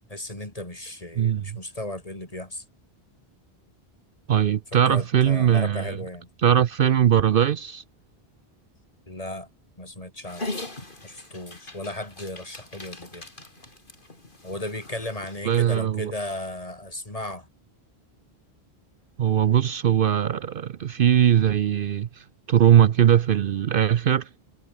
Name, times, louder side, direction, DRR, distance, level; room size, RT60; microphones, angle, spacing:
voice 1, 0.1-2.6 4.7-6.3 9.1-9.5 9.8-10.5 11.0-13.3 14.4-17.5, left 1 dB, 35° left, 3.8 m, -35 dB
voice 2, 4.3-6.0 6.4-7.8 15.5-16.1 19.2-24.3, right 9 dB, 60° right, 0.8 m, -20 dB
Dog, 10.3-15.6, left 2 dB, 55° left, 4.1 m, -40 dB
omnidirectional pair, 1.1 m